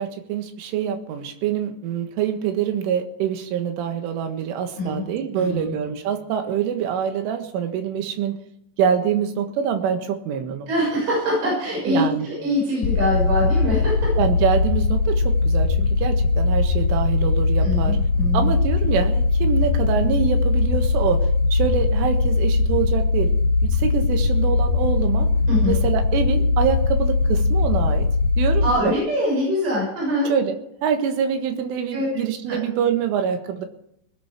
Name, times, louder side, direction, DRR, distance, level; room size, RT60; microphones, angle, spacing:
voice 1, 0.0-8.4 8.8-10.7 11.9-12.3 14.2-18.0 18.3-23.3 23.6-25.3 25.7-28.1 28.4-28.9 30.3-33.7, right 8 dB, 90° right, 6 dB, 4.1 m, -25 dB
voice 2, 5.4-5.7 10.7-13.9 17.6-18.5 25.5-25.7 28.6-30.3 31.9-32.1 32.5-32.6, left 1 dB, 55° right, -4 dB, 8.4 m, -23 dB
sound 1, 12.8-28.7, left 3 dB, 70° left, 2.0 m, -20 dB
20.5 x 11.0 x 4.9 m, 0.75 s
omnidirectional pair, 5.5 m